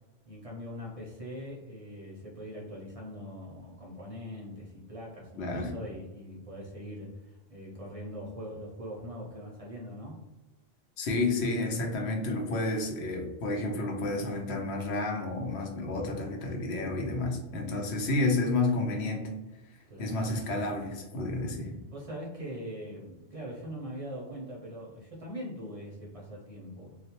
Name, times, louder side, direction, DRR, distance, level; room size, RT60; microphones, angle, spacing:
voice 1, 0.3-10.2 19.9-20.1 21.9-27.0, equal, 45° right, -4 dB, 0.5 m, -42 dB
voice 2, 5.4-5.7 11.0-19.3 20.0-21.7, left 2 dB, 90° left, 1 dB, 0.9 m, -30 dB
2.3 x 2.0 x 2.7 m, 1.1 s
omnidirectional pair, 1.1 m